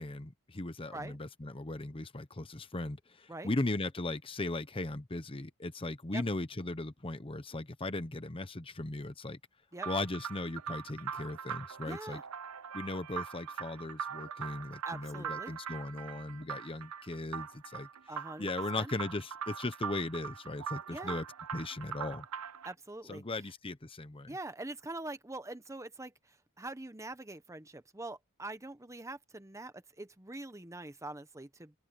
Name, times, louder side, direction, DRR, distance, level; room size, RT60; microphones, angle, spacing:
voice 1, 0.0-9.4 9.9-12.2 12.7-17.9 18.4-21.2 21.5-22.3 23.1-24.4, left 2 dB, 25° left, 0.9 m, -38 dB
sound 1, 9.8-22.7, right 7 dB, 90° right, 0.7 m, -42 dB
voice 2, 11.9-12.2 14.8-15.5 18.1-18.5 18.7-18.9 20.9-21.2 22.6-23.2 24.3-26.1 26.6-31.7, right 2 dB, 15° right, 1.1 m, -44 dB
open air
head